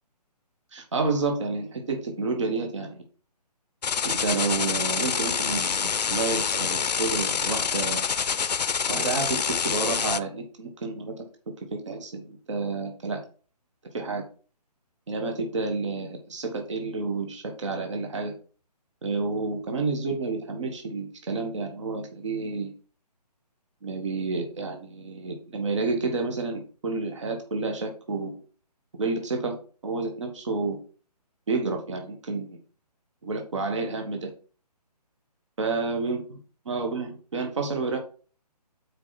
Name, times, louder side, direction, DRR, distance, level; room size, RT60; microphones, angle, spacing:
voice 1, 0.7-3.0 4.0-8.0 8.9-11.1 11.8-13.2 13.9-14.2 15.1-18.3 19.0-22.7 23.8-28.3 29.0-29.6 29.8-30.8 31.5-32.6 33.2-34.3 35.6-36.2 36.7-38.0, right 3 dB, 45° right, 4 dB, 1.5 m, -30 dB
sound 1, 3.8-10.2, left 6 dB, 75° left, 0.6 m, -26 dB
6.0 x 4.6 x 5.8 m, 0.38 s
hypercardioid pair, 180°, 21 cm